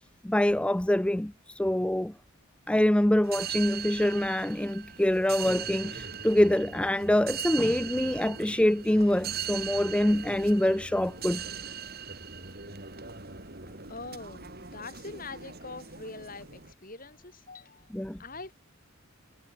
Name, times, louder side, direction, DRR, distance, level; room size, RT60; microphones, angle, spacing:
voice 1, 0.2-2.1 2.7-11.4 17.9-18.2, left 1 dB, 5° left, 0.3 m, -25 dB
sound 1, 3.2-16.7, right 7 dB, 45° right, 4.6 m, -40 dB
voice 2, 13.9-17.9 18.2-18.5, left 3 dB, 40° left, 4.9 m, -43 dB
head